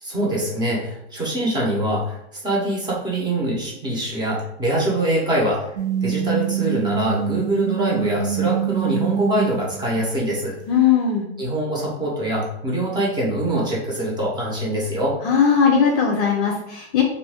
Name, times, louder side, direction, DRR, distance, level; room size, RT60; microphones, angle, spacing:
voice 1, 0.0-5.7 6.0-10.5 11.4-15.1, right 1 dB, 15° right, -4 dB, 0.9 m, -24 dB
sound 1, 5.8-10.2, right 10 dB, 85° right, 0.7 m, -25 dB
voice 2, 10.7-11.3 15.2-17.0, left 7 dB, 35° left, 0 dB, 0.5 m, -18 dB
2.6 x 2.6 x 3.4 m, 0.78 s
hypercardioid pair, 145°, 32 cm